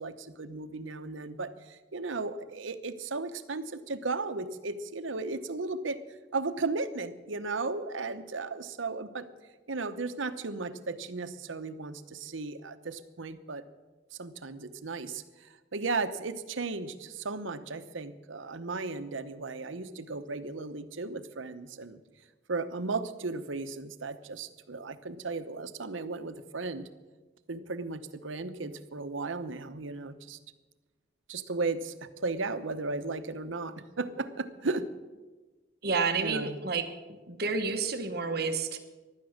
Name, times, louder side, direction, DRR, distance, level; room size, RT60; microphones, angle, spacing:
voice 1, 0.0-6.0 6.3-9.3 9.7-13.6 14.2-22.0 22.5-26.9 27.5-30.4 31.3-34.9 36.2-36.6, right 3 dB, 90° right, 10 dB, 1.0 m, -35 dB
voice 2, 35.8-36.9 37.3-38.8, right 4 dB, 55° right, 6 dB, 1.2 m, -30 dB
15.5 x 11.5 x 6.5 m, 1.2 s
head